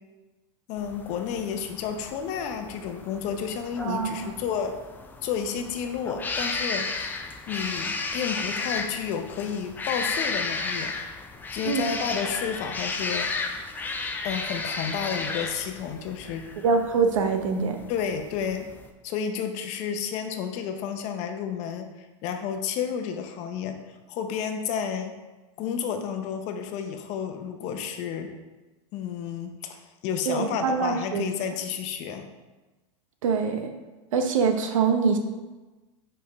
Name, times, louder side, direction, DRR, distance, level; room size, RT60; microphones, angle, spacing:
voice 1, 0.7-4.8 5.2-11.2 11.5-13.3 14.2-16.4 17.9-18.7 19.0-23.8 24.1-25.1 25.6-28.3 28.9-32.3, left 7 dB, 45° left, 6 dB, 0.7 m, -31 dB
sound 1, 0.8-18.9, left 3 dB, 10° left, 0.4 m, -34 dB
voice 2, 3.8-4.3 11.6-11.9 16.6-17.8 30.3-31.2 33.2-33.7 34.1-35.2, right 5 dB, 90° right, 6 dB, 0.8 m, -24 dB
5.4 x 5.1 x 3.4 m, 1.2 s
supercardioid pair, 135°, 16 cm